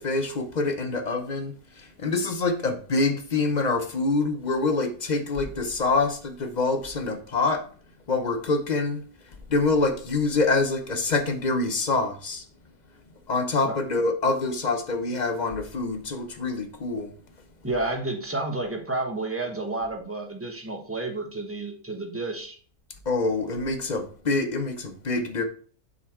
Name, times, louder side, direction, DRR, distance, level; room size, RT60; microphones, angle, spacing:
voice 1, 0.0-7.6 8.1-9.0 9.5-12.4 13.3-17.1 23.1-25.4, left 3 dB, 40° left, 0.7 m, -26 dB
voice 2, 17.6-22.6, right 2 dB, 10° right, 0.9 m, -30 dB
7.4 x 4.1 x 4.4 m
omnidirectional pair, 1.6 m